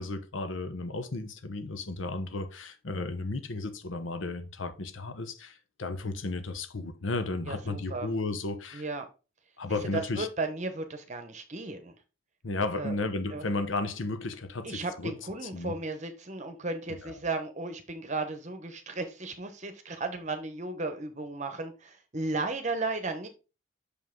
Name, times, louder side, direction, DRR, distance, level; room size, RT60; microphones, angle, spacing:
voice 1, 0.0-8.8 9.6-10.3 12.4-15.1 15.4-15.7 16.9-17.1, left 3 dB, 80° left, 1.0 m, -34 dB
voice 2, 7.5-8.1 8.7-9.0 9.9-11.9 12.7-12.9 13.3-13.5 14.6-23.3, right 3 dB, 40° right, 0.9 m, -35 dB
6.5 x 5.5 x 3.8 m
head